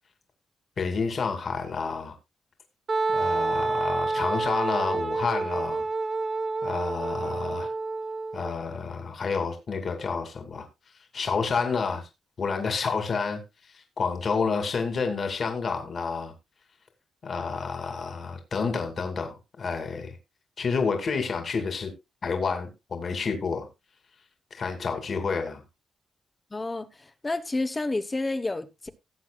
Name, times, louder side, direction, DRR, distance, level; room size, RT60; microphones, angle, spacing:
voice 1, 0.8-2.2 3.1-5.8 6.6-7.7 8.3-10.7 11.1-12.1 12.4-13.4 13.7-16.3 17.2-20.2 20.6-21.9 22.2-23.7 24.5-25.6, left 5 dB, 45° left, 2.4 m, -29 dB
Wind instrument woodwind instrument, 2.9-8.5, right 3 dB, 30° right, 0.7 m, -28 dB
voice 2, 26.5-28.9, left 2 dB, 20° left, 0.9 m, -30 dB
18.0 x 8.0 x 2.3 m
cardioid pair, 120°, 0 cm